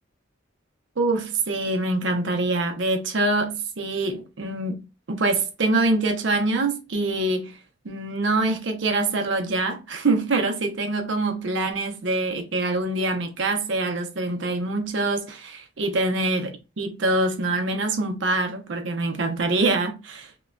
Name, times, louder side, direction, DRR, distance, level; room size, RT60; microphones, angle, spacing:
voice 1, 1.0-4.8 5.1-7.5 7.8-16.5 16.8-20.3, right 2 dB, 70° right, 0.6 m, -24 dB
2.9 x 2.2 x 2.4 m
head